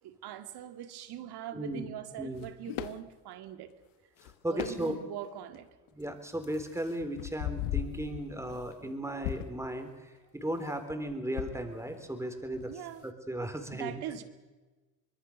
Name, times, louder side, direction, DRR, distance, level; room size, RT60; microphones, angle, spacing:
voice 1, 0.0-3.7 4.5-5.7 12.7-13.0 13.7-14.2, right 11 dB, 70° right, 9 dB, 2.3 m, -42 dB
voice 2, 1.5-1.9 2.2-2.5 4.2-5.0 5.9-12.7 13.0-13.9, right 1 dB, 5° right, 6 dB, 4.1 m, -36 dB
sound 1, 2.3-3.0 4.2-4.3 4.6-5.2 5.9-6.0 6.4-8.9 9.2-9.7 10.9-12.1 12.4-12.8, left 13 dB, 80° left, 1.2 m, -38 dB
24.5 x 21.0 x 6.6 m, 1.3 s
supercardioid pair, 85°, 40 cm